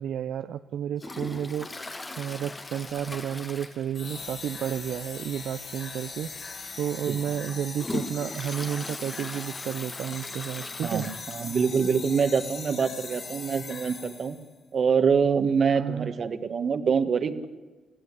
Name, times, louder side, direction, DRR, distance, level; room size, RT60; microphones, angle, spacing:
voice 1, 0.0-1.7 2.2-6.3 6.8-11.1 15.7-16.1, right 9 dB, 75° right, 11 dB, 0.6 m, -31 dB
Toilet flush, 1.0-4.4 4.7-4.8 5.2-5.3 6.2-6.3 6.8-11.7 12.1-12.2 12.3-12.4 13.5-13.6, left 2 dB, 20° left, 1.7 m, -39 dB
sound 1, 3.9-14.5, left 4 dB, 50° left, 4.9 m, -40 dB
voice 2, 10.8-14.4 14.7-17.5, right 6 dB, 50° right, 10 dB, 1.6 m, -25 dB
22.0 x 16.0 x 8.3 m, 1.3 s
cardioid pair, 90°, 0 cm